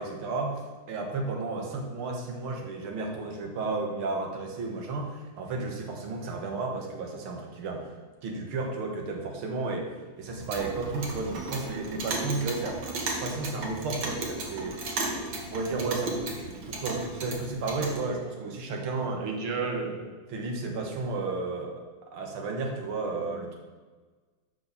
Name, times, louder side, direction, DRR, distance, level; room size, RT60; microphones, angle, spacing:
voice 1, 0.0-7.9 8.2-9.9 10.2-12.8 13.2-14.8 15.5-21.7 22.1-23.6, right 3 dB, 85° right, 1 dB, 2.2 m, -33 dB
Clock, 10.3-18.0, right 2 dB, 65° right, 2.1 m, -35 dB
6.3 x 5.7 x 6.7 m, 1.4 s
omnidirectional pair, 2.3 m